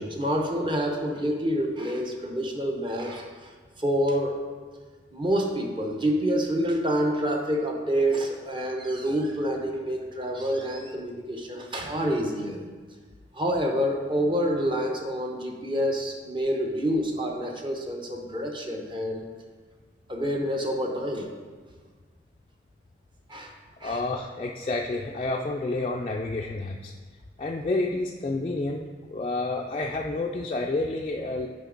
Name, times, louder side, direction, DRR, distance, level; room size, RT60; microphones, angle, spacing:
voice 1, 0.0-3.5 3.8-4.4 5.1-12.6 13.3-19.2 20.1-21.3 23.3-23.5 23.8-24.0, equal, 25° right, 2 dB, 0.7 m, -27 dB
voice 2, 23.8-26.9 27.4-28.8 29.1-31.5, left 2 dB, 30° left, 0 dB, 0.3 m, -29 dB
8.0 x 5.1 x 3.8 m, 1.5 s
head